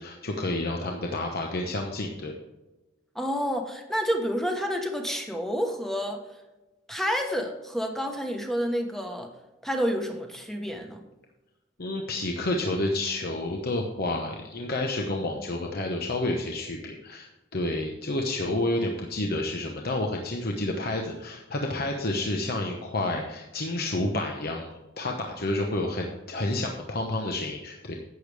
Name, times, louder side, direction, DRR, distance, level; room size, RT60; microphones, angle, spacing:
voice 1, 0.0-2.3 11.8-24.7 25.0-27.9, left 2 dB, 50° left, 2 dB, 1.0 m, -30 dB
voice 2, 3.1-6.2 6.9-9.3 9.6-11.0, equal, ahead, 3 dB, 1.2 m, -29 dB
11.5 x 8.4 x 3.4 m, 1.1 s
head